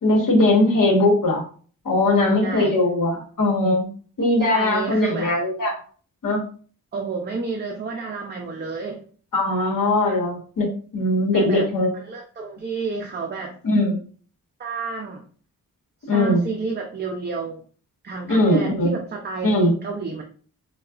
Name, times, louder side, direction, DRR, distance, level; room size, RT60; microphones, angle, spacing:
voice 1, 0.0-1.4 1.8-3.9 4.2-5.7 6.2-6.4 9.3-10.7 10.9-12.0 13.6-14.0 16.1-16.4 18.3-18.9 19.4-19.7, left 1 dB, 65° left, -1 dB, 1.2 m, -20 dB
voice 2, 2.4-2.8 4.5-5.3 6.9-9.0 11.3-11.7 11.9-13.5 14.6-15.2 16.0-17.6 18.0-20.2, right 4 dB, 30° right, 1 dB, 0.4 m, -30 dB
3.7 x 2.3 x 2.3 m, 0.43 s
wide cardioid pair, 175°, 34 cm